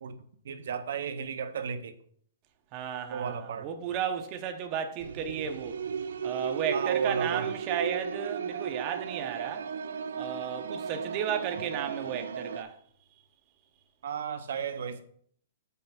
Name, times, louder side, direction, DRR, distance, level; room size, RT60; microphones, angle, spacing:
voice 1, 0.4-2.0 3.1-3.7 6.7-7.5 14.0-15.0, right 7 dB, 65° right, 0.8 m, -34 dB
voice 2, 2.7-5.8 6.2-9.7 10.2-12.8, right 8 dB, 25° right, 0.7 m, -34 dB
sound 1, 5.0-12.6, right 7 dB, 85° right, 0.5 m, -35 dB
6.1 x 5.6 x 5.9 m
hypercardioid pair, 175°, 0 cm